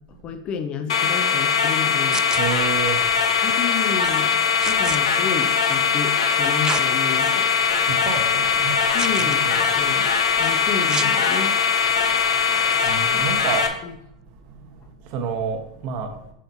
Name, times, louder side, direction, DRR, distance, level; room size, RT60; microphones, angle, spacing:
voice 1, 0.1-2.3 3.4-4.4 4.7-7.5 7.8-8.1 8.9-10.1 10.4-11.6 13.8-14.0, left 6 dB, 35° left, 8 dB, 0.8 m, -31 dB
sound 1, 0.9-13.7, left 6 dB, 70° left, 1.0 m, -21 dB
sound 2, 2.1-2.4 4.6-5.0 6.6-6.9 7.5-7.6 9.0-9.4 10.9-11.1 12.7-12.9, right 6 dB, 20° right, 0.5 m, -29 dB
voice 2, 2.4-3.1 4.6-4.8 7.7-8.9 9.2-9.9 11.8-13.9 14.5-16.1, right 6 dB, 45° right, 4 dB, 1.2 m, -30 dB
7.4 x 7.1 x 2.7 m, 0.77 s
hypercardioid pair, 100°, 3 cm